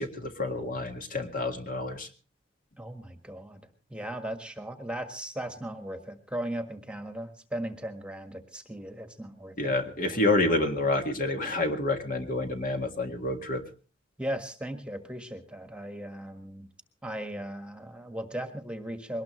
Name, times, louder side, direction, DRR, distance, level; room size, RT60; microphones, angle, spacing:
voice 1, 0.0-2.1 9.6-13.6, left 2 dB, 45° left, 5 dB, 1.8 m, -28 dB
voice 2, 2.8-3.6 3.9-9.7 10.1-10.2 14.2-16.7 17.0-19.2, right 1 dB, 5° right, 7 dB, 1.5 m, -37 dB
22.0 x 19.5 x 3.2 m, 0.37 s
head